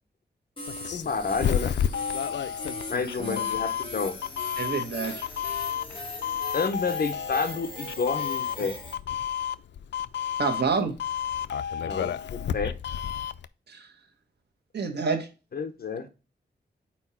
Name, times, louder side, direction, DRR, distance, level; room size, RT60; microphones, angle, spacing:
sound 1, 0.6-8.9, left 2 dB, 30° left, 1.6 m, -39 dB
Doorbell, 0.7-13.5, left 9 dB, 85° left, 0.4 m, -31 dB
voice 1, 0.9-1.8 2.9-4.2 6.5-8.8 11.8-12.8 15.5-16.1, left 5 dB, 60° left, 0.9 m, -30 dB
voice 2, 4.6-5.2 10.4-11.0 13.7-13.9 14.7-15.3, right 5 dB, 70° right, 1.3 m, -28 dB
4.5 x 4.4 x 5.6 m
wide cardioid pair, 145°, 18 cm